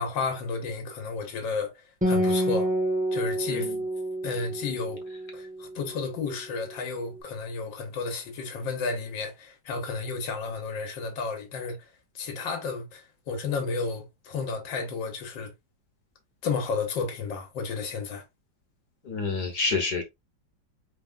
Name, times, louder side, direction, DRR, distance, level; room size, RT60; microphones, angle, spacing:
voice 1, 0.0-1.7 2.1-2.7 3.1-3.7 4.2-5.0 5.3-11.8 12.2-15.5 16.4-18.2, left 4 dB, 80° left, 1.8 m, -32 dB
Acoustic guitar, 2.0-5.7, equal, 10° right, 0.5 m, -28 dB
voice 2, 19.0-20.0, left 4 dB, 60° left, 1.6 m, -28 dB
4.7 x 3.5 x 2.4 m
omnidirectional pair, 2.0 m